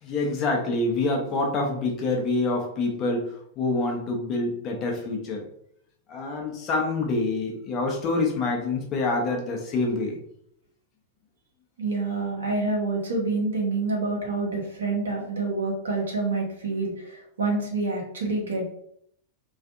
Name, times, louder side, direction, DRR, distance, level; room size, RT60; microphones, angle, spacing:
voice 1, 0.0-5.5 6.1-10.2, left 3 dB, 35° left, 1 dB, 0.6 m, -26 dB
voice 2, 11.8-18.7, right 3 dB, 65° right, -1 dB, 0.8 m, -27 dB
2.5 x 2.4 x 2.5 m, 0.69 s
figure-of-eight pair, 90°, 0 cm